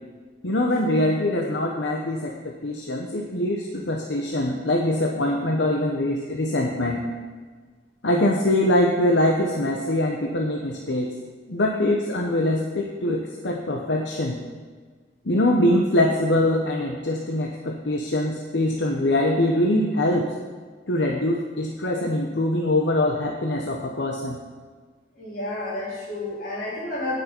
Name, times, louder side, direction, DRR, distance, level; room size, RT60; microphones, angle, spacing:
voice 1, 0.4-7.1 8.0-11.1 11.5-14.4 15.2-20.3 20.9-24.4, left 1 dB, 75° left, 0 dB, 0.9 m, -23 dB
voice 2, 25.1-27.2, left 2 dB, 55° left, -5 dB, 4.0 m, -30 dB
16.5 x 6.4 x 4.5 m, 1.5 s
head